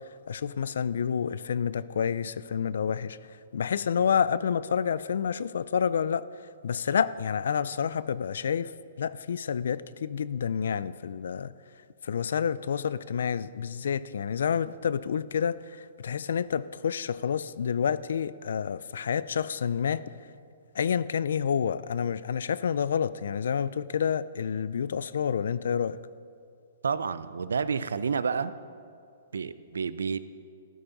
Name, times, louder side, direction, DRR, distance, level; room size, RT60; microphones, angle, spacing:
voice 1, 0.3-6.2 6.6-11.5 12.0-20.0 20.7-26.0, left 7 dB, 75° left, 17 dB, 0.4 m, -29 dB
voice 2, 26.8-28.5 29.3-30.2, right 5 dB, 85° right, 15 dB, 0.5 m, -29 dB
14.5 x 12.0 x 4.0 m, 2.4 s
hypercardioid pair, 140°, 0 cm